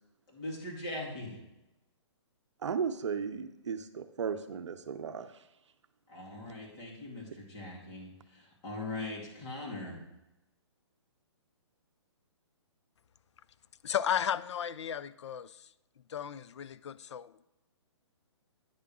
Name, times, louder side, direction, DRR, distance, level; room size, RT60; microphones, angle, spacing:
voice 1, 0.3-1.4 6.1-10.0, left 2 dB, 30° left, -2 dB, 2.3 m, -41 dB
voice 2, 2.6-5.3, right 6 dB, 75° right, 9 dB, 0.6 m, -35 dB
voice 3, 13.8-15.5 16.1-17.4, left 9 dB, 70° left, 16 dB, 0.4 m, -34 dB
9.4 x 3.5 x 6.0 m, 0.95 s
hypercardioid pair, 140°, 15 cm